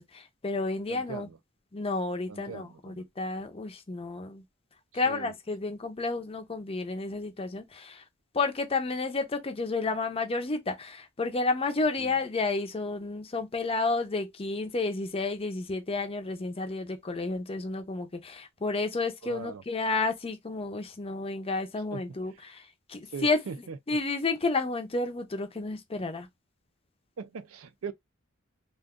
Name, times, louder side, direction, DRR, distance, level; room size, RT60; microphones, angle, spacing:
voice 1, 0.0-1.3 1.7-4.4 4.9-8.0 8.3-23.4 23.9-26.3, left 3 dB, 30° left, 0.6 m, -31 dB
voice 2, 0.9-1.4 2.3-3.0 5.0-5.3 12.0-12.2 19.2-19.6 21.9-22.0 23.1-23.8 27.2-27.9, right 5 dB, 75° right, 0.5 m, -40 dB
2.5 x 2.2 x 3.6 m
head